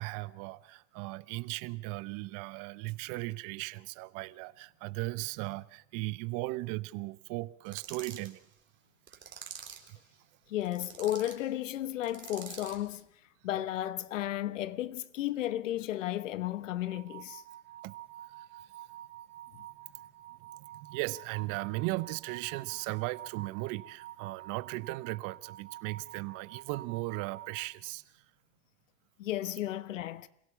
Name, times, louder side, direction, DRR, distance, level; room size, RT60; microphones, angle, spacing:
voice 1, 0.0-8.5 9.9-10.0 17.8-18.0 18.3-18.7 19.9-20.0 20.4-28.2, right 21 dB, 60° right, 1.0 m, -37 dB
sound 1, 7.6-8.3 9.1-9.9 10.6-11.4 12.0-12.8, right 7 dB, 30° right, 3.5 m, -46 dB
voice 2, 10.5-13.0 13.4-17.4 29.2-30.3, left 13 dB, 85° left, 1.1 m, -33 dB
sound 2, 16.8-27.6, right 13 dB, 75° right, 4.4 m, -49 dB
26.5 x 16.5 x 7.0 m
hypercardioid pair, 85°, 37 cm